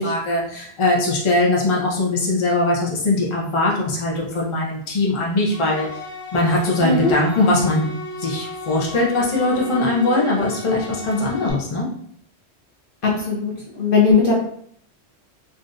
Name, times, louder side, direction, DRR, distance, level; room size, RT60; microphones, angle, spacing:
voice 1, 0.0-5.9 6.3-7.9 8.2-11.9, left 2 dB, 30° left, -3 dB, 0.7 m, -21 dB
sound 1, 5.5-11.5, left 2 dB, 85° left, 1.2 m, -35 dB
voice 2, 6.8-7.1 13.0-14.3, left 4 dB, 60° left, -3 dB, 0.8 m, -18 dB
3.4 x 2.6 x 2.6 m, 0.63 s
omnidirectional pair, 1.1 m